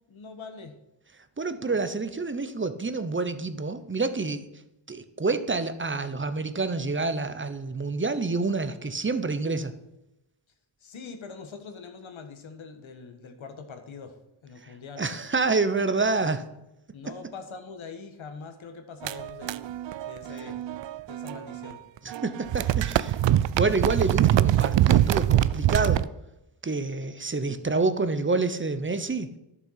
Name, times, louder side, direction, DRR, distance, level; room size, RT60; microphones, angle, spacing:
voice 1, 0.1-0.8 1.6-1.8 10.8-14.2 14.4-15.1 16.9-19.6 20.0-20.6 21.1-21.8, left 5 dB, 70° left, 7 dB, 1.6 m, -43 dB
voice 2, 1.4-4.5 4.9-9.7 14.6-16.4 17.0-17.1 22.0-23.2 23.5-26.0 26.6-29.3, right 3 dB, 25° right, 11 dB, 0.9 m, -28 dB
sound 1, 19.0-21.7 22.0-26.1, right 12 dB, 65° right, 0.5 m, -24 dB
11.5 x 7.0 x 5.7 m, 0.88 s
cardioid pair, 90°, 49 cm